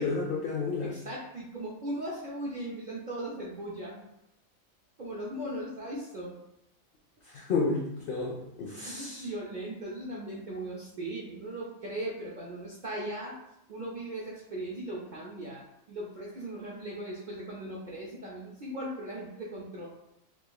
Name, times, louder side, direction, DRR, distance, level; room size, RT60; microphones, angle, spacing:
voice 1, 0.0-1.0 7.2-9.3, left 4 dB, 65° left, -2 dB, 0.6 m, -31 dB
voice 2, 0.8-4.0 5.0-6.4 8.9-13.4 13.7-19.9, right 1 dB, 55° right, -5 dB, 0.5 m, -38 dB
3.5 x 2.9 x 2.2 m, 0.81 s
omnidirectional pair, 1.5 m